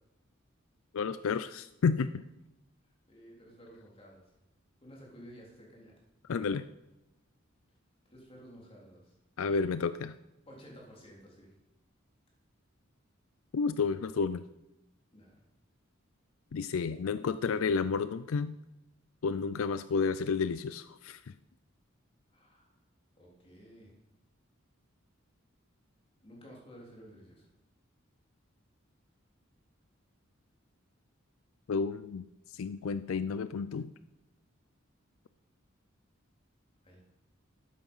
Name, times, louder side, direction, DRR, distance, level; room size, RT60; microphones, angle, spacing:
voice 1, 0.9-2.1 6.3-6.6 9.4-10.1 13.5-14.4 16.5-18.5 19.2-21.3 31.7-32.2 32.5-33.9, left 5 dB, 80° left, 14 dB, 0.4 m, -31 dB
voice 2, 3.1-4.2 4.8-5.9 6.3-6.6 8.1-9.2 10.5-11.5 15.1-15.4 22.3-22.7 23.2-23.9 26.2-27.5 36.8-37.0, equal, 30° left, -2 dB, 3.5 m, -53 dB
12.5 x 9.3 x 5.5 m, 0.94 s
head